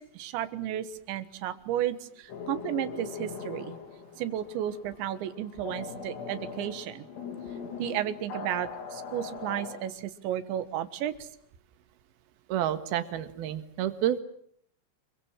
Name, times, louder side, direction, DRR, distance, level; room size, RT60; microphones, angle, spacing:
voice 1, 0.0-3.7 4.2-7.1 7.8-11.3, right 11 dB, 85° right, 12 dB, 3.7 m, -33 dB
sound 1, 2.3-9.9, left 5 dB, 70° left, 5.3 m, -40 dB
voice 2, 12.5-14.2, right 11 dB, 65° right, 9 dB, 3.3 m, -29 dB
28.5 x 23.0 x 7.5 m, 0.65 s
omnidirectional pair, 5.1 m